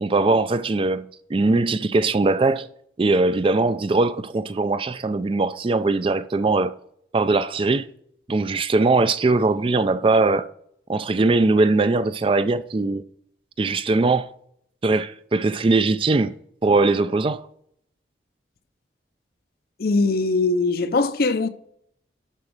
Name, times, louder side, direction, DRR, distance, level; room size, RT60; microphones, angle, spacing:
voice 1, 0.0-2.7 3.0-6.7 7.1-7.9 8.3-10.4 10.9-13.0 13.6-14.3 14.8-16.3 16.6-17.4, right 3 dB, 30° right, 0.4 m, -20 dB
voice 2, 19.8-21.5, left 3 dB, 55° left, 0.6 m, -21 dB
11.5 x 4.1 x 6.1 m
head